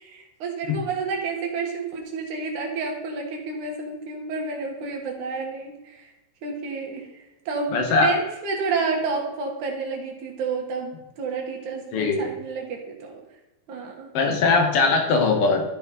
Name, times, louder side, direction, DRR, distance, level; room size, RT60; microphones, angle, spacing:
voice 1, 0.0-6.1 6.4-13.2 13.7-14.1, right 4 dB, 90° right, 0 dB, 3.0 m, -30 dB
voice 2, 7.7-8.1 11.9-12.3 14.1-15.6, left 4 dB, 55° left, 3 dB, 2.3 m, -20 dB
13.5 x 5.2 x 4.2 m, 1.0 s
omnidirectional pair, 3.4 m